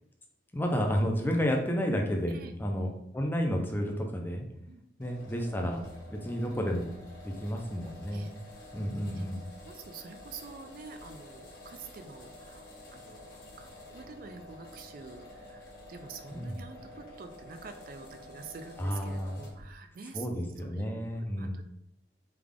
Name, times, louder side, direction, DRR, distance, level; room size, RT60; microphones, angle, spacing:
voice 1, 0.5-2.9 3.1-4.5 5.0-5.8 6.1-6.9 7.2-8.3 8.7-9.5 16.3-16.6 18.8-19.4 20.1-21.6, equal, 10° left, 2 dB, 0.4 m, -31 dB
voice 2, 2.3-2.6 4.7-4.8 6.1-6.3 8.1-8.3 9.1-9.2 9.6-12.6 12.9-13.3 13.6-20.3 20.6-21.6, right 5 dB, 50° right, 7 dB, 0.4 m, -47 dB
sound 1, 5.0-19.7, left 1 dB, 55° left, 1.1 m, -50 dB
3.4 x 2.3 x 3.6 m, 0.78 s
head